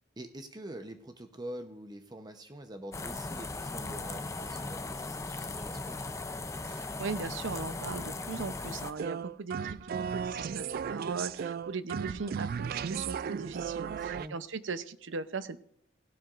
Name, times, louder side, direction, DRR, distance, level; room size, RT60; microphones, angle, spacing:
voice 1, 0.2-6.0 13.8-14.4, right 1 dB, 20° right, 6 dB, 0.8 m, -45 dB
sound 1, 2.9-8.9, left 3 dB, 15° left, 0.6 m, -38 dB
voice 2, 6.6-15.6, right 4 dB, 75° right, 13 dB, 0.7 m, -39 dB
sound 2, 9.0-14.3, right 7 dB, 50° right, 0.3 m, -35 dB
17.0 x 12.0 x 2.5 m, 0.68 s
head